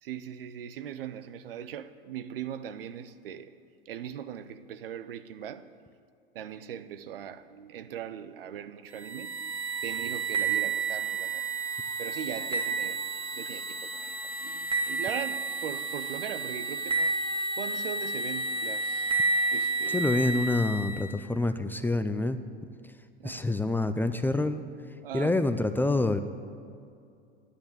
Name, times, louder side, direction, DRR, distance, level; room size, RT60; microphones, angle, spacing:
voice 1, 0.0-3.5 3.9-5.7 6.3-9.5 9.8-11.5 12.0-17.2 17.6-19.1 19.5-20.0 23.2-23.5 25.0-25.3, right 9 dB, 70° right, 0.8 m, -40 dB
sound 1, 8.9-21.1, right 3 dB, 15° right, 1.9 m, -31 dB
voice 2, 19.9-22.4 23.2-24.6 25.1-26.2, left 2 dB, 5° left, 0.5 m, -27 dB
10.5 x 9.9 x 8.7 m
figure-of-eight pair, 85°, 29 cm